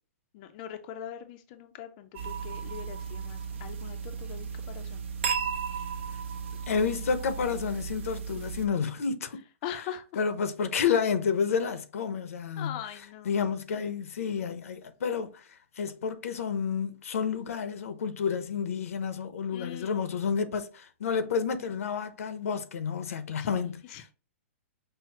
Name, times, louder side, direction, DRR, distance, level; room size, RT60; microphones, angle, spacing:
voice 1, 0.3-5.0 9.6-10.0 12.6-13.4 19.5-20.2 23.4-23.7 23.9-24.1, left 10 dB, 35° left, 0.4 m, -42 dB
sound 1, 2.1-8.7, right 6 dB, 60° right, 0.9 m, -35 dB
voice 2, 6.7-9.4 9.7-9.8 10.1-12.8 13.2-24.1, left 6 dB, 80° left, 0.7 m, -30 dB
5.6 x 2.0 x 2.8 m
hypercardioid pair, 155°, 7 cm